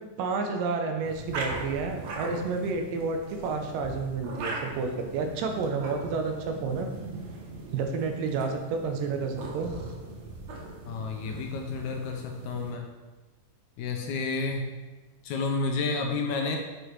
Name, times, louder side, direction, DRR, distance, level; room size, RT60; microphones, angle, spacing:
voice 1, 0.2-6.9 7.7-9.7, right 4 dB, 85° right, 4 dB, 2.4 m, -30 dB
sound 1, 1.0-12.7, right 3 dB, 70° right, 1.8 m, -40 dB
voice 2, 10.9-12.9 13.8-14.7 15.2-16.6, left 4 dB, 80° left, 2 dB, 1.8 m, -30 dB
7.9 x 4.2 x 3.1 m, 1.2 s
omnidirectional pair, 3.8 m